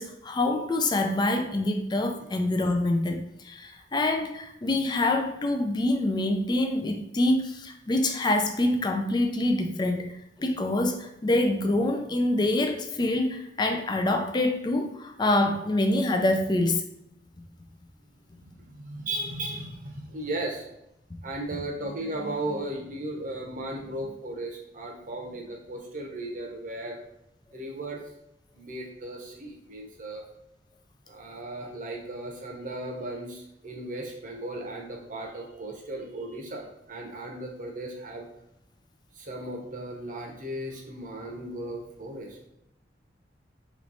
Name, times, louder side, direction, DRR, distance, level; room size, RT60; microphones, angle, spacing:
voice 1, 0.0-10.1 10.4-16.8, left 2 dB, 25° left, 4 dB, 0.4 m, -26 dB
voice 2, 18.4-20.7 21.2-27.0 27.5-28.0 28.5-30.2 31.1-38.3 39.1-42.5, right 1 dB, 50° right, 0 dB, 0.9 m, -36 dB
3.1 x 3.1 x 3.9 m, 0.80 s
head